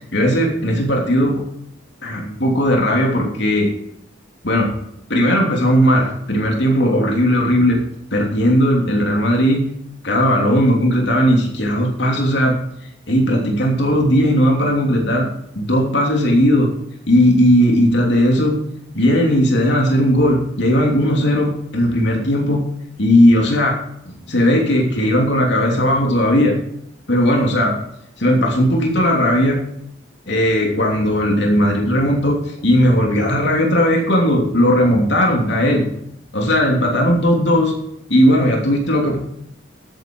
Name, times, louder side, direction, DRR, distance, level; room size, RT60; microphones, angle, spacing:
voice 1, 0.1-1.4 2.0-3.7 4.4-4.7 5.1-7.8 8.1-9.6 10.0-12.6 13.1-15.3 15.5-16.7 17.1-18.6 18.9-22.6 23.0-23.8 24.1-26.5 27.1-27.8 28.2-29.6 30.3-35.9 36.3-37.7 38.1-39.2, equal, 60° left, 0 dB, 3.0 m, -16 dB
13.0 x 9.2 x 4.7 m, 0.76 s
head